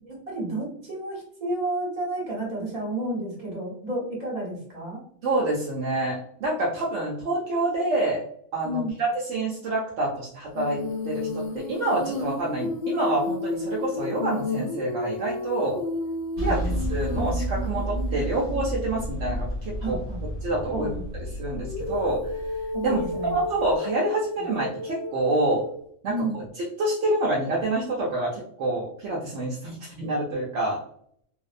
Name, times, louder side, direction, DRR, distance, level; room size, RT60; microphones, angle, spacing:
voice 1, 0.0-5.0 8.6-8.9 16.3-16.7 19.8-20.2 20.7-21.0 22.7-23.4 26.1-26.4, right 1 dB, 35° right, -4 dB, 1.2 m, -31 dB
voice 2, 5.2-8.2 8.5-10.8 11.0-15.8 16.4-16.6 16.9-20.0 20.4-20.9 21.4-22.2 22.8-23.0 23.3-25.6 26.0-26.4 26.8-30.8, right 2 dB, 70° right, -3 dB, 0.9 m, -27 dB
Female singing, 10.5-19.4 21.6-25.8, left 2 dB, 85° left, 1.0 m, -32 dB
sound 1, 16.4-23.8, right 1 dB, 50° left, 0.8 m, -32 dB
2.6 x 2.0 x 2.4 m, 0.64 s
omnidirectional pair, 1.3 m